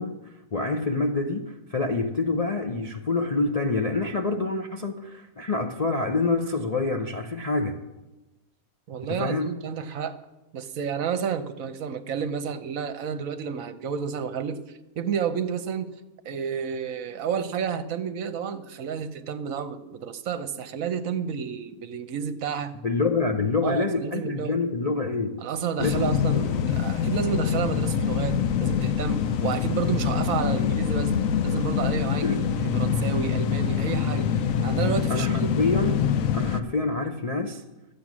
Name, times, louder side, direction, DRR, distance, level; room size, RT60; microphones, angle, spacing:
voice 1, 0.0-7.8 9.1-9.5 22.8-25.4 25.8-26.5 32.2-32.5 35.1-37.6, left 3 dB, 45° left, 1 dB, 0.5 m, -27 dB
voice 2, 8.9-10.2 10.5-14.6 15.0-15.9 16.2-22.7 23.6-24.6 25.4-31.1 31.4-35.5, right 7 dB, 65° right, 10 dB, 1.1 m, -30 dB
sound 1, 25.8-36.6, left 7 dB, 70° left, 1.0 m, -25 dB
13.5 x 8.5 x 6.1 m, 1.0 s
omnidirectional pair, 1.6 m